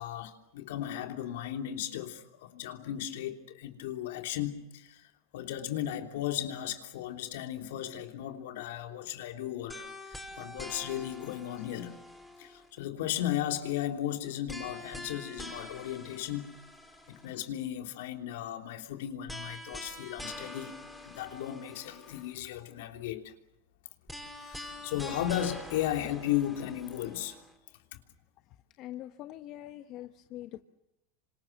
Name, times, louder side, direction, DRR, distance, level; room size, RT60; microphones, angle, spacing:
voice 1, 0.0-12.0 12.4-16.5 17.1-20.8 21.0-23.3 24.3-27.4 27.9-28.0, left 12 dB, 75° left, 3.3 m, -35 dB
sound 1, 9.7-12.8 14.5-17.5 19.3-22.4 24.1-27.5, left 1 dB, ahead, 5.3 m, -45 dB
voice 2, 28.8-30.6, left 13 dB, 50° left, 1.2 m, -43 dB
28.0 x 26.0 x 6.7 m
hypercardioid pair, 110°, 0 cm